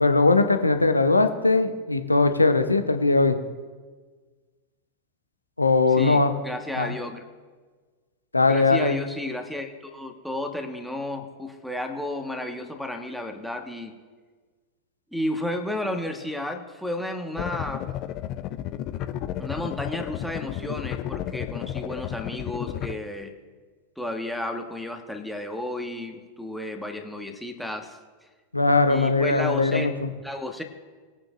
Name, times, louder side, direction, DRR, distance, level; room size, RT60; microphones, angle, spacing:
voice 1, 0.0-3.4 5.6-6.3 6.8-6.9 8.3-8.9 28.5-30.1, left 3 dB, 80° left, 8 dB, 0.8 m, -20 dB
voice 2, 6.0-7.2 8.5-13.9 15.1-17.9 19.4-23.3 24.0-28.0 28.9-29.9 30.2-30.6, left 1 dB, ahead, 3 dB, 1.4 m, -32 dB
sound 1, 17.4-22.9, left 12 dB, 40° left, 0.5 m, -32 dB
20.5 x 8.8 x 2.5 m, 1.4 s
figure-of-eight pair, 90°, 0 cm